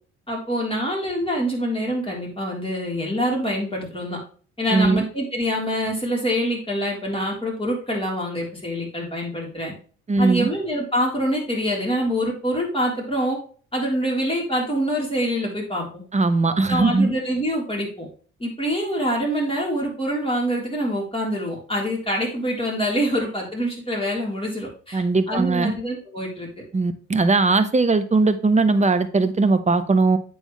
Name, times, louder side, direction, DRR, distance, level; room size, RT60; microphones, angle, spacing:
voice 1, 0.3-4.2 4.6-9.7 10.2-13.4 13.7-16.0 16.7-18.1 18.4-26.5, equal, 15° left, -2 dB, 3.8 m, -25 dB
voice 2, 4.7-5.0 10.1-10.5 16.1-17.1 24.9-25.7 26.7-30.2, right 3 dB, 20° right, 10 dB, 0.9 m, -19 dB
8.0 x 6.3 x 3.2 m, 0.41 s
figure-of-eight pair, 45°, 38 cm